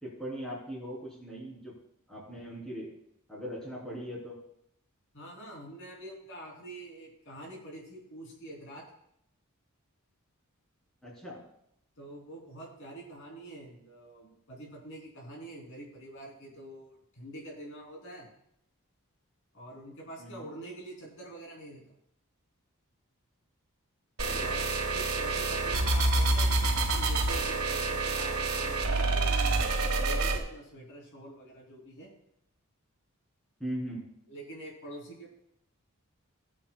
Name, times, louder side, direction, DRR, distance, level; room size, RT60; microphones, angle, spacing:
voice 1, 0.0-1.7 2.1-2.9 3.3-4.4 11.0-11.4 20.2-20.4 24.2-24.5 33.6-34.1, equal, 5° left, -5 dB, 3.4 m, -39 dB
voice 2, 5.1-8.8 12.0-18.3 19.5-21.9 24.4-24.7 24.9-32.1 34.3-35.3, right 1 dB, 60° left, -2 dB, 3.2 m, -46 dB
sound 1, 24.2-30.4, right 2 dB, 85° right, 1.4 m, -27 dB
18.0 x 7.4 x 2.3 m, 0.76 s
head